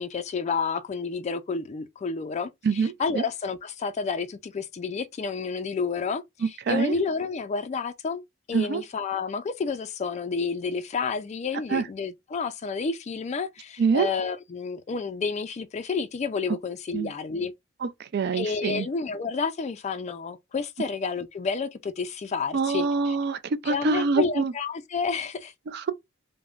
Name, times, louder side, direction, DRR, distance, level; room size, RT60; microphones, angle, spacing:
voice 1, 0.0-8.2 8.5-17.5 18.3-23.2 23.7-25.5, left 5 dB, 35° left, 0.3 m, -30 dB
voice 2, 2.6-3.2 6.7-6.9 8.5-8.8 11.7-11.9 13.8-14.1 16.9-17.1 17.8-18.9 22.5-24.5 25.7-25.9, right 4 dB, 55° right, 0.4 m, -25 dB
3.4 x 2.1 x 2.4 m
head